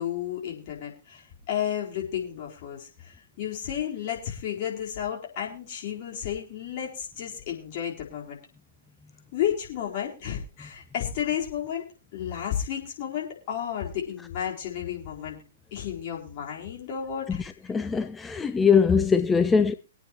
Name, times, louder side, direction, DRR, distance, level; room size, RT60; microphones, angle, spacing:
voice 1, 0.0-8.4 9.3-11.9 12.1-15.4 15.7-17.7, left 9 dB, 45° left, 4.2 m, -32 dB
voice 2, 17.3-19.7, left 6 dB, 10° left, 0.5 m, -22 dB
23.0 x 8.9 x 3.0 m
figure-of-eight pair, 115°, 0 cm